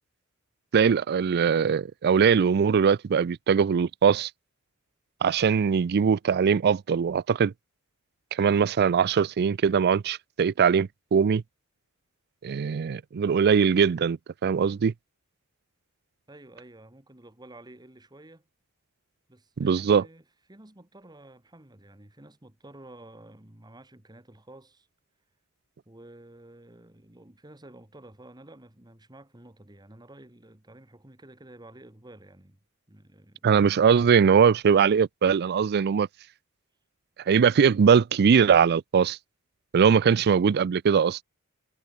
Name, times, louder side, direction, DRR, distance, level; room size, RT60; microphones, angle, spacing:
voice 1, 0.7-4.3 5.2-7.5 8.3-11.4 12.4-14.9 19.6-20.0 33.4-36.1 37.3-39.2 39.7-41.2, right 6 dB, 50° right, 0.4 m, -21 dB
voice 2, 16.3-18.5 19.3-24.9 25.9-32.6 32.9-33.5, right 1 dB, 20° right, 1.9 m, -51 dB
head